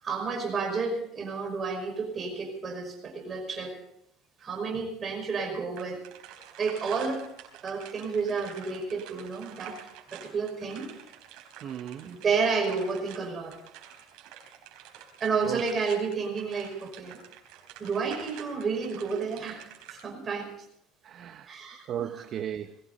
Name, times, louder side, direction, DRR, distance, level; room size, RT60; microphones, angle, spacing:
voice 1, 0.0-3.7 4.4-6.0 6.6-7.2 7.6-9.8 10.1-10.9 12.0-13.5 15.2-17.2 17.8-20.5 21.5-22.2, right 5 dB, 25° right, 2 dB, 5.6 m, -31 dB
sound 1, 5.7-20.0, right 10 dB, 75° right, 4.0 m, -48 dB
voice 2, 11.6-12.1 15.0-15.1 15.4-15.7 21.0-21.5 21.9-22.8, right 10 dB, 45° right, 9 dB, 0.8 m, -36 dB
21.0 x 16.5 x 4.1 m, 0.74 s
cardioid pair, 150°, 0 cm